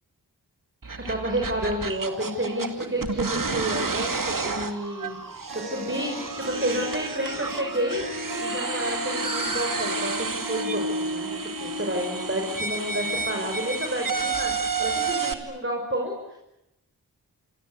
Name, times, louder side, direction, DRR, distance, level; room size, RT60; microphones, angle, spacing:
sound 1, 0.8-15.3, right 4 dB, 55° right, 2.4 m, -31 dB
voice 1, 1.1-5.2 5.5-16.4, right 1 dB, 30° right, 1 dB, 6.2 m, -30 dB
Harp, 5.2-5.3 5.5-15.0, equal, 70° right, 7.2 m, -35 dB
28.0 x 25.0 x 8.3 m, 0.87 s
cardioid pair, 45°, 40 cm